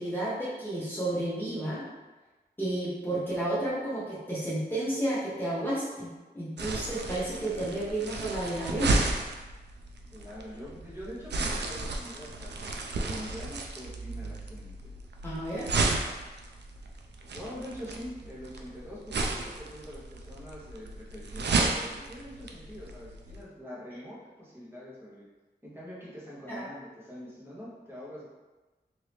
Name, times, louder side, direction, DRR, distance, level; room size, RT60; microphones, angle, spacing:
voice 1, 0.0-1.9 2.6-6.1 6.3-8.9 15.2-15.7 26.5-26.6, right 1 dB, 10° left, -9 dB, 1.0 m, -31 dB
sound 1, 6.6-23.4, right 3 dB, 85° right, 0.4 m, -33 dB
voice 2, 10.1-12.6 13.0-14.9 17.3-25.3 25.6-28.3, equal, 15° right, -8 dB, 1.1 m, -44 dB
3.0 x 2.7 x 3.3 m, 1.2 s
wide cardioid pair, 90°, 17 cm